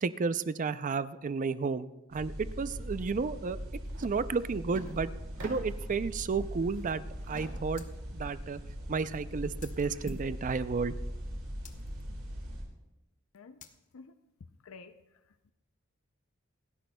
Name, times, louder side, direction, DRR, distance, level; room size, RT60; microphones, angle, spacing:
voice 1, 0.0-3.6 4.0-5.1 5.4-7.0 7.3-7.8 8.1-8.6 8.9-10.9, right 4 dB, 40° right, 14 dB, 0.4 m, -32 dB
sound 1, 2.1-12.6, equal, 80° right, 4.6 m, -40 dB
sound 2, 3.9-4.1 4.4-6.0 6.4-8.0, right 2 dB, 65° right, 2.3 m, -47 dB
sound 3, 7.8-7.9 9.6-10.5 11.6-12.1 13.6-13.9, left 8 dB, 40° left, 0.8 m, -53 dB
voice 2, 14.6-15.5, left 4 dB, 75° left, 10 dB, 0.5 m, -52 dB
28.5 x 10.5 x 2.2 m, 0.98 s
head